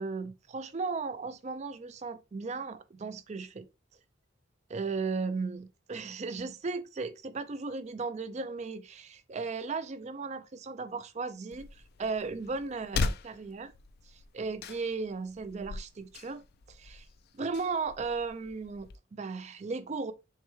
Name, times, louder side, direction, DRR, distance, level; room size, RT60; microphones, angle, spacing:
voice 1, 0.0-3.7 4.7-13.7 14.1-17.1 17.3-20.1, right 4 dB, 35° right, 0.4 m, -36 dB
sound 1, 11.5-19.0, left 4 dB, 50° left, 0.3 m, -39 dB
6.5 x 2.2 x 3.1 m
head